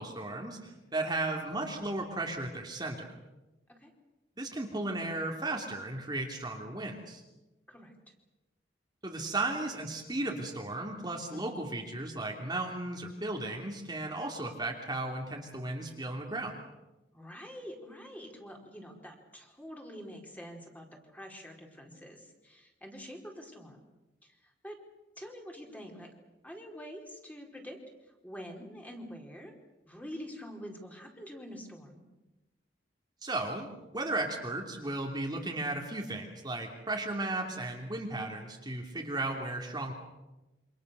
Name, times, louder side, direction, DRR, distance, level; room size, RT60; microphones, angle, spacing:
voice 1, 0.0-3.1 4.4-7.2 9.0-16.6 33.2-39.9, right 2 dB, 25° right, 0 dB, 2.9 m, -35 dB
voice 2, 17.1-20.9 21.1-23.8 24.2-24.8 25.2-26.1 26.4-27.8 28.2-29.5 29.8-32.1, equal, 10° left, 1 dB, 4.4 m, -46 dB
28.0 x 26.5 x 6.9 m, 1.0 s
head